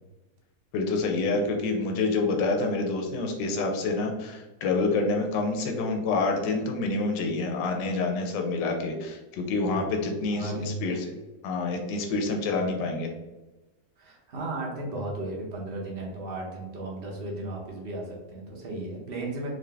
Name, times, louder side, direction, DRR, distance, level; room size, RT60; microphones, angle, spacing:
voice 1, 0.7-11.0 11.4-13.1, left 3 dB, 80° left, 3 dB, 1.2 m, -27 dB
voice 2, 9.7-11.0 12.5-12.7 14.0-19.5, right 2 dB, 50° right, -2 dB, 0.7 m, -35 dB
3.8 x 2.5 x 3.3 m, 1.1 s
omnidirectional pair, 2.0 m